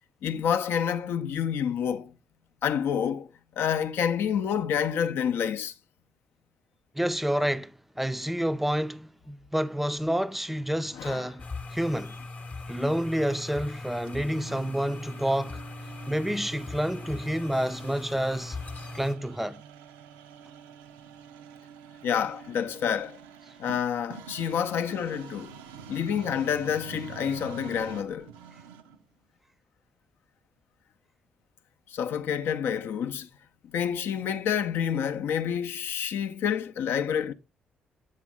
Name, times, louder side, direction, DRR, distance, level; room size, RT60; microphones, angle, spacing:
voice 1, 0.2-2.1 2.6-3.3 3.6-5.7 10.9-11.3 12.7-12.9 22.0-23.2 23.6-25.5 25.9-28.3 31.9-33.3 33.6-37.3, left 8 dB, 60° left, 0.5 m, -28 dB
voice 2, 6.9-11.4 11.7-12.2 12.7-15.6 16.1-18.6 18.9-19.6, equal, 5° right, 0.4 m, -29 dB
sound 1, 11.4-19.2, left 3 dB, 35° left, 0.8 m, -40 dB
sound 2, 14.1-29.1, right 7 dB, 75° right, 0.5 m, -47 dB
7.4 x 4.9 x 3.5 m
figure-of-eight pair, 45°, 4 cm